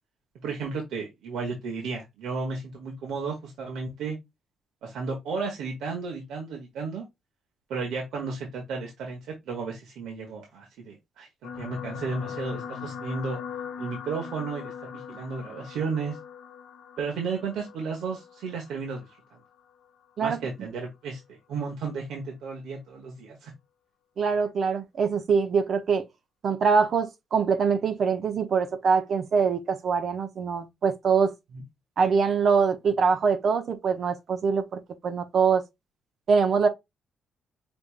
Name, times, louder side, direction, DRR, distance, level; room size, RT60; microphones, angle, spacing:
voice 1, 0.4-4.2 4.8-7.1 7.7-13.4 13.8-16.2 17.0-19.1 20.2-23.5 31.5-31.6, right 4 dB, 85° right, 1.3 m, -33 dB
sound 1, 11.4-19.9 20.7-20.9 21.2-21.3, left 7 dB, 80° left, 0.9 m, -40 dB
voice 2, 24.2-26.0 26.4-31.3 32.0-35.6 36.3-36.7, right 5 dB, 55° right, 0.8 m, -24 dB
5.3 x 3.4 x 2.5 m
cardioid pair, 90°, 0 cm